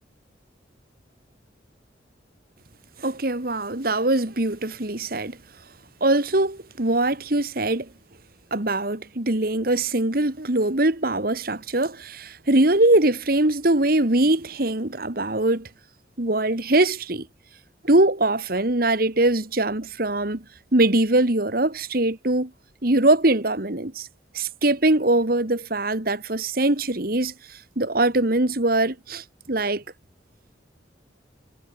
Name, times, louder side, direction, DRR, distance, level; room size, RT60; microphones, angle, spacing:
voice 1, 3.0-5.4 6.0-7.9 8.5-15.7 16.2-17.3 17.8-20.4 20.7-22.5 22.8-24.1 24.3-29.8, right 2 dB, 50° right, 1.9 m, -22 dB
head